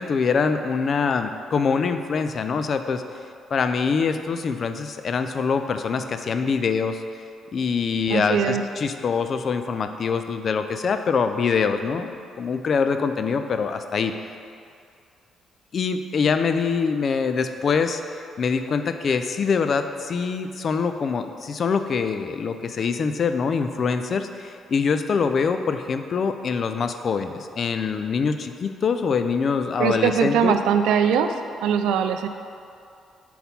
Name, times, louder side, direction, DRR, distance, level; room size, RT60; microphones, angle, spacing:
voice 1, 0.0-3.0 3.5-7.0 7.5-14.1 15.7-30.5, left 5 dB, 50° left, 8 dB, 0.3 m, -24 dB
voice 2, 8.1-8.6 29.8-31.3 31.6-32.3, right 7 dB, 90° right, 8 dB, 0.3 m, -21 dB
4.2 x 4.2 x 5.4 m, 2.4 s
cardioid pair, 90°, 0 cm